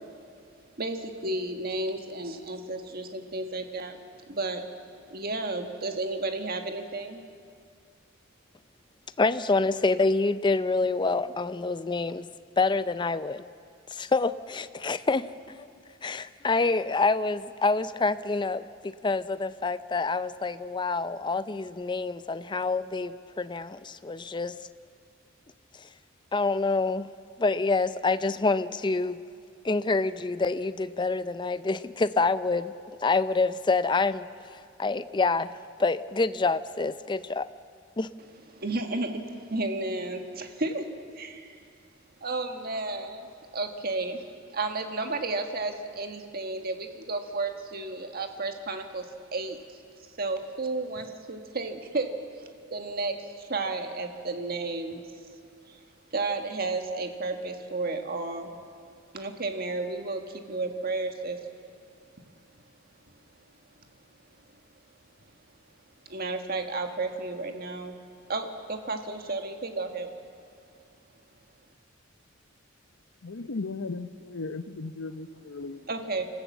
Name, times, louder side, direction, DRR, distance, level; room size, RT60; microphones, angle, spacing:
voice 1, 0.8-4.0 4.3-4.7 5.1-7.2 38.5-40.9 41.1-41.6 42.2-43.3 43.5-49.8 50.2-55.0 55.7-55.8 56.1-58.5 59.1-61.4 66.0-68.0 68.3-70.1 75.9-76.3, right 2 dB, 50° right, 5 dB, 1.6 m, -32 dB
voice 2, 9.2-12.3 12.6-13.5 13.9-15.7 16.0-24.6 26.3-27.1 27.4-29.2 29.6-32.7 33.0-34.3 34.8-37.5 38.0-38.1, left 3 dB, 25° left, 14 dB, 0.5 m, -27 dB
voice 3, 73.2-75.9, left 3 dB, 80° left, 12 dB, 0.8 m, -36 dB
26.5 x 15.0 x 7.4 m, 2.3 s
head